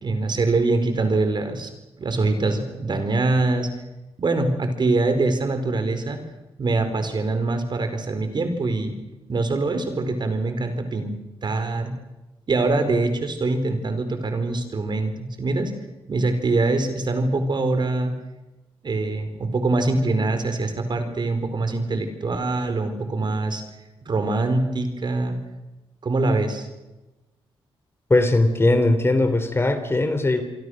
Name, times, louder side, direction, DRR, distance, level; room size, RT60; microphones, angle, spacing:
voice 1, 0.0-1.7 2.0-3.7 4.2-6.2 6.6-9.0 9.3-11.1 11.4-11.9 12.5-15.7 16.1-18.1 18.8-23.6 24.0-25.4 26.0-26.7, right 3 dB, 50° right, 8 dB, 4.6 m, -23 dB
voice 2, 28.1-30.4, left 2 dB, 25° left, 9 dB, 3.5 m, -19 dB
27.5 x 23.5 x 6.6 m, 1.0 s
cardioid pair, 75°, 10 cm